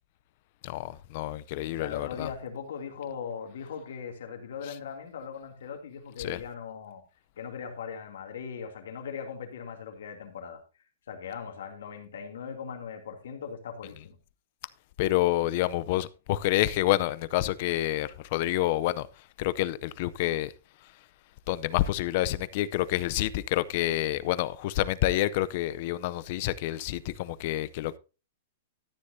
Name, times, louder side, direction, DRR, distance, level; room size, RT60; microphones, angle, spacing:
voice 1, 0.6-2.3 6.2-6.4 15.0-19.1 19.4-20.5 21.5-28.0, left 15 dB, 35° left, 0.5 m, -28 dB
voice 2, 1.7-7.0 7.4-10.6 11.1-14.2, left 6 dB, 70° left, 2.6 m, -39 dB
13.0 x 9.9 x 2.7 m
supercardioid pair, 175°, 0 cm